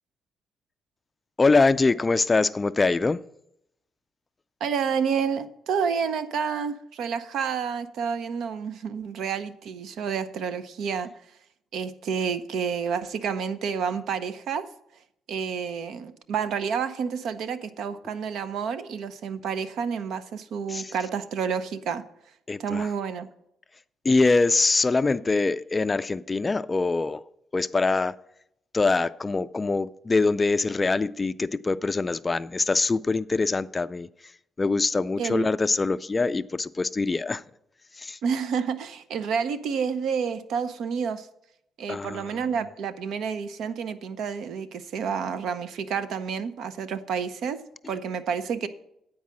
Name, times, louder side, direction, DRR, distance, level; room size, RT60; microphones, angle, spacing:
voice 1, 1.4-3.2 20.7-20.9 22.5-22.9 24.0-27.2 27.5-28.2 28.7-34.1 34.6-37.4 37.9-38.2 41.9-42.4, left 3 dB, 25° left, 15 dB, 0.3 m, -24 dB
voice 2, 4.6-11.1 11.7-14.7 15.3-22.0 22.6-23.3 35.2-35.5 38.2-41.3 41.8-48.7, right 6 dB, 75° right, 12 dB, 0.7 m, -29 dB
9.5 x 4.7 x 7.4 m, 0.76 s
cardioid pair, 90°, 0 cm